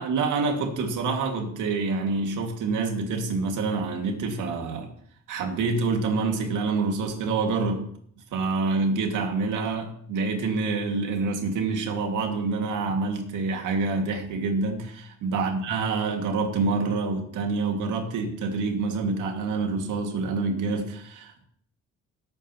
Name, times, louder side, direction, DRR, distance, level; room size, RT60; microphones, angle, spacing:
voice 1, 0.0-4.9 5.3-7.8 8.3-21.4, right 4 dB, 85° right, 3 dB, 2.2 m, -27 dB
17.0 x 8.7 x 3.0 m, 0.63 s
cardioid pair, 90°, 30 cm